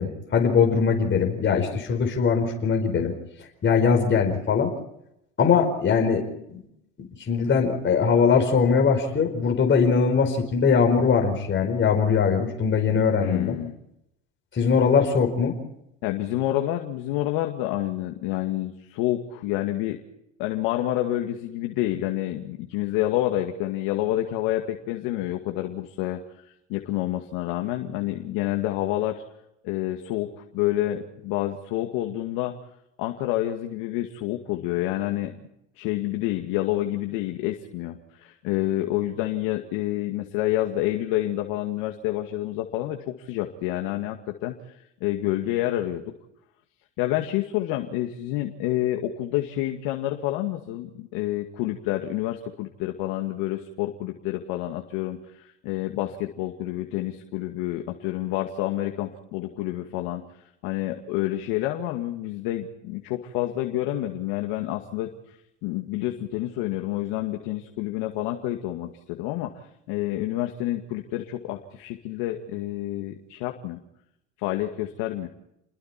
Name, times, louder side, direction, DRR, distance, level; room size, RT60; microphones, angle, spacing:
voice 1, 0.0-3.1 3.6-4.7 5.4-6.3 7.3-13.6 14.5-15.5, left 6 dB, 30° left, 2 dB, 4.9 m, -21 dB
voice 2, 13.2-13.7 16.0-20.0 20.4-29.2 29.6-32.5 33.0-35.4 35.8-46.1 47.0-69.5 69.9-73.8 74.4-75.3, left 14 dB, 70° left, 4 dB, 2.3 m, -28 dB
29.5 x 21.0 x 4.5 m, 0.80 s
supercardioid pair, 95°, 36 cm